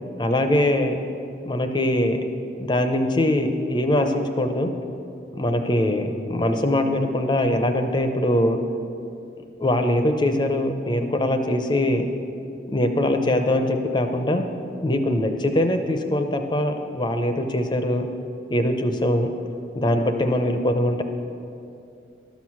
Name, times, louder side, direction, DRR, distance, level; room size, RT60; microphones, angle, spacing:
voice 1, 0.2-1.0 1.4-2.2 2.6-4.7 5.3-8.6 9.6-12.1 12.7-14.4 14.8-18.1 18.5-19.3 19.8-21.0, left 1 dB, 25° left, 6 dB, 0.6 m, -22 dB
12.0 x 6.3 x 5.9 m, 2.6 s
head